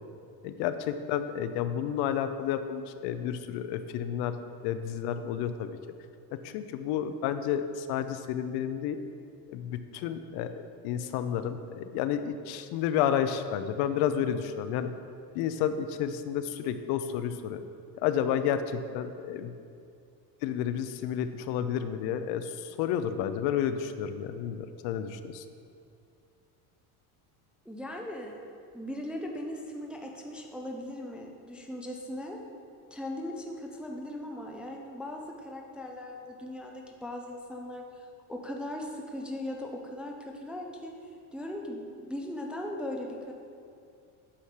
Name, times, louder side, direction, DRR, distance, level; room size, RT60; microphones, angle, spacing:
voice 1, 0.4-4.4 4.6-5.8 6.4-9.0 9.5-10.5 10.8-14.9 15.3-17.6 18.0-19.5 20.4-25.4, left 9 dB, 70° left, 10 dB, 0.6 m, -31 dB
voice 2, 27.7-28.4 28.7-32.4 32.9-40.9 41.3-43.3, left 1 dB, 5° right, 1 dB, 0.3 m, -39 dB
8.7 x 5.8 x 4.9 m, 2.4 s
cardioid pair, 160°, 39 cm